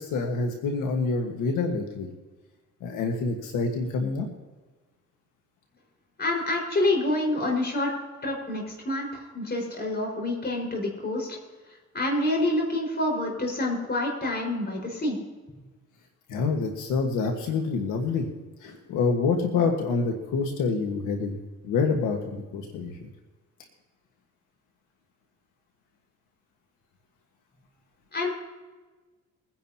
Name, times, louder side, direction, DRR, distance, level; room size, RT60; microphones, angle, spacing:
voice 1, 0.0-2.1 2.8-4.3 16.3-18.3 18.6-21.4 21.6-23.1, left 4 dB, 90° left, 3 dB, 1.6 m, -27 dB
voice 2, 6.2-7.9 8.2-11.3 11.9-15.2 28.1-28.3, left 1 dB, 35° left, -1 dB, 5.0 m, -27 dB
22.5 x 10.5 x 2.9 m, 1.2 s
cardioid pair, 90°, 30 cm